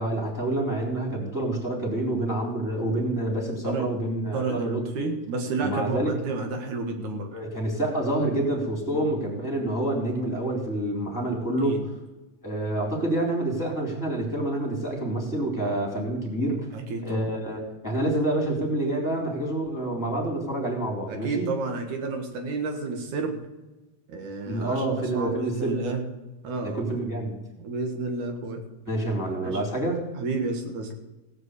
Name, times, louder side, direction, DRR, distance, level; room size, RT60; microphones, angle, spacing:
voice 1, 0.0-5.2 5.6-6.2 7.3-11.9 12.4-16.7 17.0-21.5 24.5-25.9 26.6-27.4 28.8-30.0, right 1 dB, 5° left, -1 dB, 3.7 m, -27 dB
voice 2, 4.3-7.3 8.9-9.2 11.6-11.8 16.7-17.3 21.1-23.4 24.1-26.0 26.4-26.9 27.6-28.6 29.4-29.6 30.2-30.9, right 3 dB, 75° right, 5 dB, 2.9 m, -31 dB
17.0 x 6.1 x 8.2 m, 1.1 s
omnidirectional pair, 3.4 m